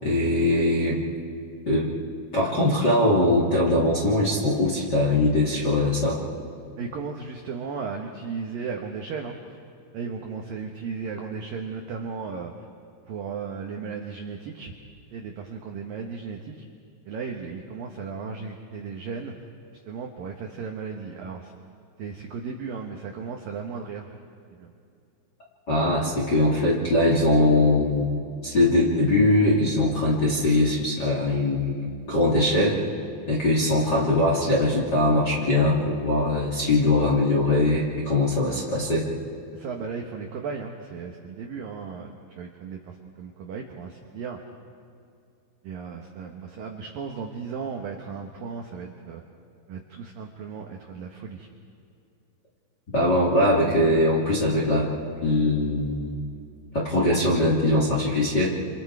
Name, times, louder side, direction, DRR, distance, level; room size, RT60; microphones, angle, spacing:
voice 1, 0.0-1.0 1.7-1.9 2.3-6.2 25.7-28.1 28.4-32.8 33.3-39.1 52.9-54.9 55.2-56.3 56.7-58.5, left 1 dB, 30° left, -4 dB, 2.1 m, -21 dB
voice 2, 6.8-9.6 9.9-12.5 13.1-14.7 15.1-16.6 17.1-19.3 19.9-21.5 22.0-24.1 24.5-24.7 39.5-44.4 45.6-49.2 49.7-51.5, right 5 dB, 75° right, 2 dB, 2.1 m, -35 dB
28.5 x 28.5 x 4.8 m, 2.4 s
omnidirectional pair, 5.8 m